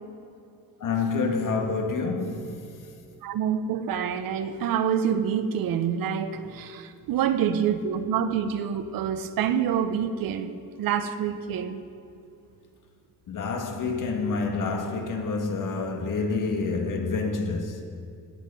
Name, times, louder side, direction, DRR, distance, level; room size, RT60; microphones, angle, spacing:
voice 1, 0.8-2.7 13.3-17.8, left 4 dB, 65° left, 1.7 m, -28 dB
voice 2, 3.2-10.5 10.8-11.8, right 8 dB, 90° right, 0.9 m, -27 dB
17.5 x 9.4 x 5.4 m
cardioid pair, 155°, 34 cm